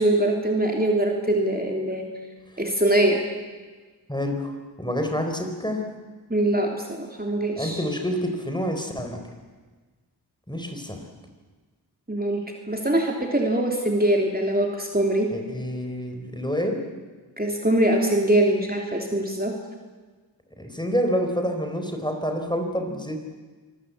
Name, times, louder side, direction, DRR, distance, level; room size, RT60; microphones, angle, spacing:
voice 1, 0.0-2.1 2.6-3.2 6.3-7.8 12.1-15.3 17.4-19.5, right 1 dB, 20° right, 1 dB, 3.2 m, -23 dB
voice 2, 4.1-4.5 4.8-5.9 7.6-9.2 10.5-11.0 15.3-16.8 20.6-23.3, equal, 10° left, 4 dB, 4.5 m, -28 dB
25.0 x 21.0 x 8.5 m, 1.4 s
wide cardioid pair, 40°, 42 cm